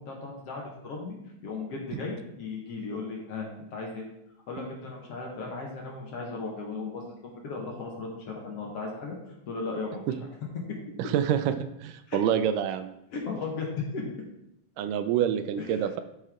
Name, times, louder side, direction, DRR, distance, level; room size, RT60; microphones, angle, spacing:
voice 1, 0.0-4.0 4.5-9.2 9.5-10.0 12.1-12.2 13.1-14.0 15.7-15.9, left 4 dB, 55° left, -1 dB, 2.0 m, -36 dB
voice 2, 11.0-12.9 14.8-16.0, right 9 dB, 85° right, 10 dB, 2.1 m, -27 dB
12.0 x 5.5 x 3.7 m, 0.83 s
omnidirectional pair, 3.8 m